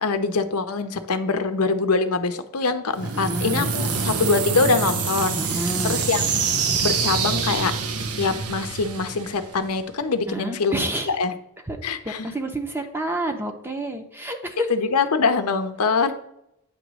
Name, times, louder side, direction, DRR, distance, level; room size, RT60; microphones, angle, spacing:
voice 1, 0.0-6.4 6.8-7.7 8.2-11.3 11.8-12.3 14.7-16.1, left 4 dB, 85° left, 8 dB, 0.7 m, -24 dB
sound 1, 2.9-9.8, right 5 dB, 85° right, 0.8 m, -26 dB
voice 2, 3.0-4.2 5.4-6.0 10.3-11.2 11.7-11.8 12.0-14.7, right 1 dB, 10° right, 4 dB, 0.7 m, -29 dB
8.8 x 3.0 x 6.1 m, 0.81 s
head